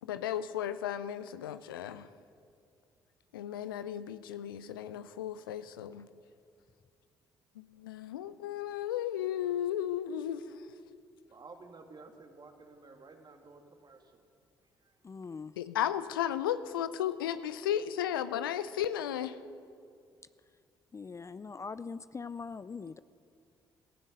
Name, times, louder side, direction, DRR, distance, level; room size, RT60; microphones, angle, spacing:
voice 1, 0.0-2.1 3.3-6.1 7.8-10.7 15.6-19.4, left 10 dB, 85° left, 14 dB, 0.5 m, -34 dB
voice 2, 11.3-14.2, right 3 dB, 40° right, 4 dB, 2.4 m, -53 dB
voice 3, 15.0-15.5 20.9-23.0, left 5 dB, 25° left, 15 dB, 0.5 m, -42 dB
17.5 x 15.5 x 5.4 m, 2.3 s
figure-of-eight pair, 45°, 11 cm